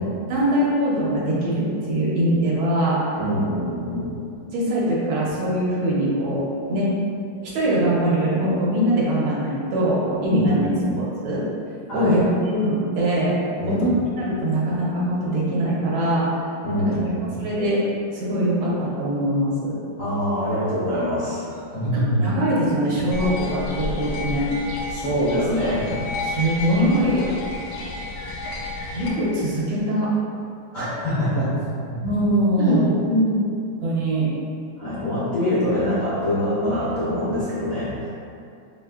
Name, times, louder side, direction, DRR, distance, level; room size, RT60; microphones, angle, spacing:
voice 1, 0.3-3.0 4.5-6.4 6.7-6.9 7.4-10.6 11.0-11.4 11.9-13.4 13.7-13.9 14.2-16.3 16.9-17.0 17.4-17.8 18.1-19.7 21.9-24.5 26.2-27.3 28.9-30.1 32.0-32.9 33.8-34.3, right 1 dB, 75° right, -6 dB, 1.6 m, -22 dB
voice 2, 3.2-4.1 10.3-10.9 11.9-12.2 13.6-13.9 16.6-17.3 20.0-21.4 21.7-22.1 24.9-25.9 30.7-31.5 31.9-32.0 32.6-33.4 34.8-38.1, equal, 65° left, -11 dB, 0.8 m, -24 dB
sound 1, 23.1-29.1, left 2 dB, 90° left, 1.5 m, -31 dB
5.0 x 2.6 x 2.4 m, 2.5 s
omnidirectional pair, 2.3 m